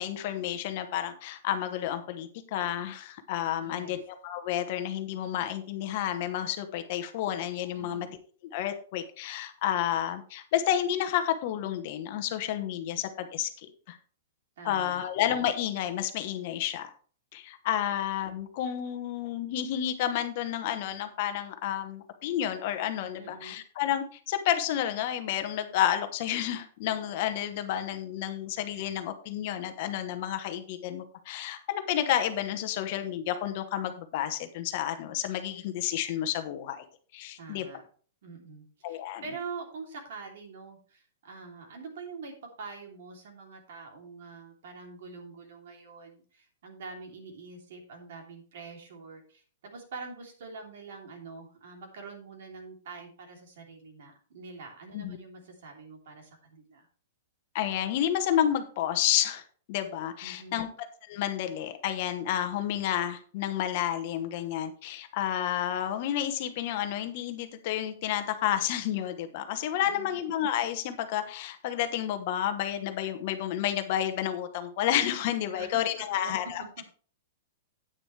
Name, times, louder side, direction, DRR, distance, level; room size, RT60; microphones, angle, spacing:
voice 1, 0.0-8.1 8.5-14.0 14.6-16.9 17.3-36.8 37.1-37.7 38.8-39.2 54.9-55.2 57.5-59.4 59.7-60.7 61.1-76.8, left 11 dB, 40° left, 8 dB, 1.0 m, -30 dB
voice 2, 3.6-4.0 7.7-8.1 14.6-15.0 17.9-18.0 23.2-23.6 37.4-37.8 38.2-56.9 60.2-60.7 69.8-70.2 75.5-75.7 76.1-76.5, right 4 dB, 60° right, 2 dB, 3.1 m, -45 dB
9.8 x 9.0 x 3.3 m, 0.43 s
supercardioid pair, 170°, 0 cm